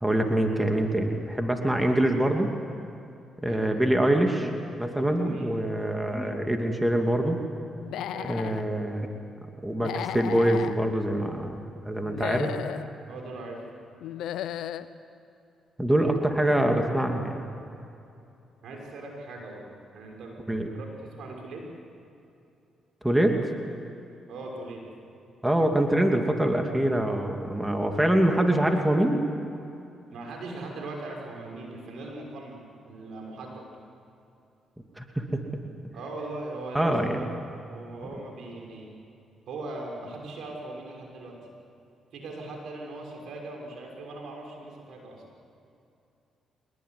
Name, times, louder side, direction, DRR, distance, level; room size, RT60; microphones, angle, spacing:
voice 1, 0.0-2.5 3.4-4.5 4.8-7.4 8.2-9.1 9.6-11.6 11.8-12.5 15.8-17.4 20.5-20.7 23.0-23.4 25.4-29.2 35.0-35.4 36.7-37.2, right 1 dB, 10° right, 3 dB, 2.6 m, -24 dB
voice 2, 5.2-5.6 8.1-8.4 13.1-13.6 18.6-19.6 19.9-20.3 20.7-21.6 24.3-24.8 30.1-32.6 32.8-33.6 35.9-36.9 37.7-39.0 39.5-41.4 42.1-45.2, right 2 dB, 75° right, 0 dB, 6.3 m, -39 dB
Human voice / Animal, 7.8-8.6 9.8-10.7 12.0-12.9 14.0-14.9, left 11 dB, 85° left, 0.8 m, -34 dB
24.0 x 21.0 x 9.7 m, 2.7 s
cardioid pair, 70°, 0 cm